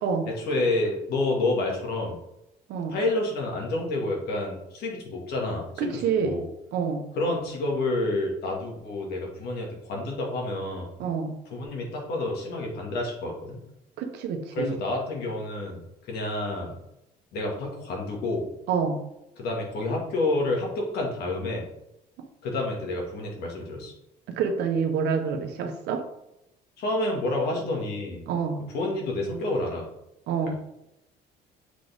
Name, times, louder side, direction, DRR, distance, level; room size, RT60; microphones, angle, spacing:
voice 1, 0.3-2.2 2.9-5.9 6.2-6.5 7.2-10.9 11.5-13.6 14.6-16.8 17.3-18.5 19.4-21.7 22.4-23.9 26.8-28.2 28.7-29.9 30.4-30.6, left 2 dB, 70° left, -1 dB, 2.1 m, -29 dB
voice 2, 5.8-6.4 6.7-7.0 11.0-11.4 14.0-14.8 18.7-19.0 24.3-26.0 28.3-28.6 30.3-30.5, right 6 dB, 80° right, 5 dB, 1.0 m, -27 dB
7.3 x 3.9 x 3.6 m, 0.85 s
cardioid pair, 110°, 17 cm